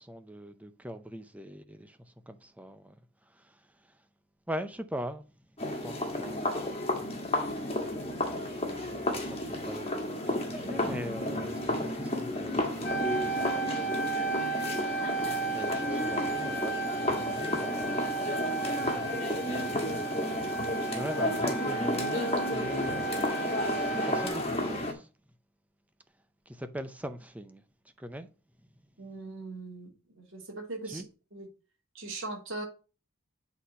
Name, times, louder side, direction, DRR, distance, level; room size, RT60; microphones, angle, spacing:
voice 1, 0.0-2.9 3.3-3.6 4.5-5.2 5.7-6.9 8.4-14.0 15.5-20.3 20.8-25.1 26.5-27.6 28.0-28.3 30.9-31.0, equal, 5° right, 0.5 m, -42 dB
sound 1, 5.6-24.9, left 1 dB, 25° left, 1.6 m, -32 dB
sound 2, 12.8-24.3, right 4 dB, 55° left, 1.5 m, -34 dB
voice 2, 29.0-29.9 30.2-31.0 31.3-31.5 31.9-32.6, right 2 dB, 60° right, 2.7 m, -39 dB
8.1 x 4.2 x 5.5 m
head